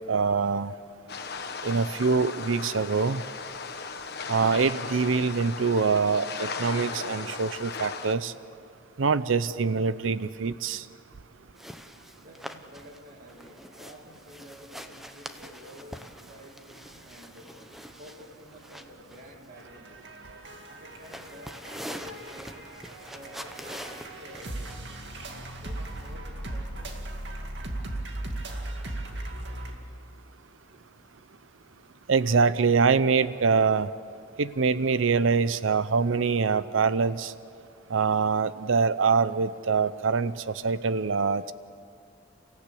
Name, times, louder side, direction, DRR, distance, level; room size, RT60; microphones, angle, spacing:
voice 1, 0.1-0.7 1.6-3.2 4.3-8.3 9.0-10.9 32.1-33.9 34.4-37.3 37.9-41.5, right 5 dB, 85° right, 15 dB, 0.6 m, -24 dB
sound 1, 1.1-8.1, left 4 dB, 55° left, 1.3 m, -36 dB
sound 2, 11.6-26.1, equal, ahead, 0.8 m, -45 dB
voice 2, 12.2-17.5 18.0-20.0 20.6-22.7 23.1-25.0 25.2-27.0, equal, 45° right, 0 dB, 2.1 m, -50 dB
sound 3, 19.6-29.7, right 1 dB, 60° right, 2.2 m, -38 dB
30.0 x 15.5 x 8.4 m, 2.4 s
head